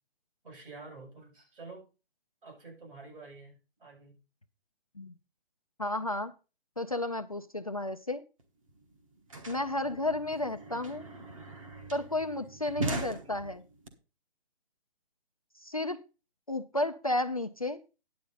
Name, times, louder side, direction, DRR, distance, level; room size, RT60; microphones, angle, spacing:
voice 1, 0.4-1.9 2.4-4.2, right 3 dB, 60° right, 7.5 m, -49 dB
voice 2, 5.8-6.3 6.8-8.2 9.5-11.0 11.9-13.6 15.6-16.0 16.5-17.8, left 2 dB, 40° left, 0.4 m, -32 dB
sound 1, 8.4-8.5 8.7-13.9, right 2 dB, 35° right, 1.4 m, -40 dB
10.5 x 8.4 x 3.9 m
hypercardioid pair, 180°, 31 cm